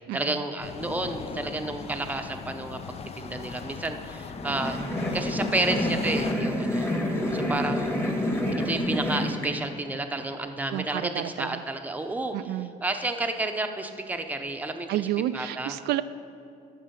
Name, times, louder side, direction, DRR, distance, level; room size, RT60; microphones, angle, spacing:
voice 1, 0.1-6.9 7.3-7.9 8.6-15.1 15.3-15.8, right 2 dB, 10° right, 5 dB, 0.7 m, -31 dB
sound 1, 0.6-6.3, left 6 dB, 35° left, 0.5 m, -39 dB
sound 2, 4.3-9.5, left 1 dB, 15° left, 1.4 m, -28 dB
voice 2, 10.7-11.5 12.3-12.7 14.9-16.0, right 13 dB, 75° right, 11 dB, 0.4 m, -30 dB
13.0 x 6.2 x 5.8 m, 2.5 s
cardioid pair, 110°, 17 cm